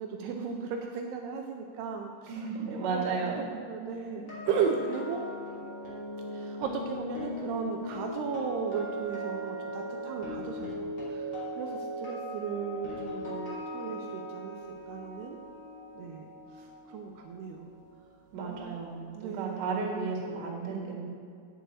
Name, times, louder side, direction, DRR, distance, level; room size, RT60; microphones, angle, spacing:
voice 1, 0.0-2.5 2.8-5.2 6.3-14.6 14.9-15.4 16.0-16.3 16.6-17.7 18.4-19.7, right 6 dB, 80° right, 3 dB, 2.5 m, -36 dB
voice 2, 2.3-3.4 18.3-21.1, right 4 dB, 55° right, -3 dB, 3.0 m, -33 dB
sound 1, 4.1-18.1 18.4-18.7, equal, 30° left, 2.8 m, -39 dB
9.1 x 6.3 x 8.2 m, 2.4 s
omnidirectional pair, 5.2 m